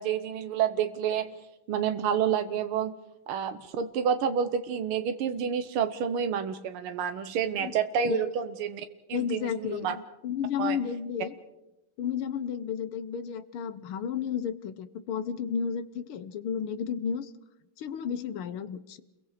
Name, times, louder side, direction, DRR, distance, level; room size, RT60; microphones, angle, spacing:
voice 1, 0.0-1.3 1.7-3.0 3.3-10.0 10.6-10.8, right 7 dB, 90° right, 9 dB, 1.9 m, -29 dB
voice 2, 9.1-11.3 12.0-17.3 17.8-19.0, left 7 dB, 85° left, 12 dB, 1.8 m, -32 dB
29.5 x 22.5 x 4.9 m, 0.93 s
omnidirectional pair, 2.3 m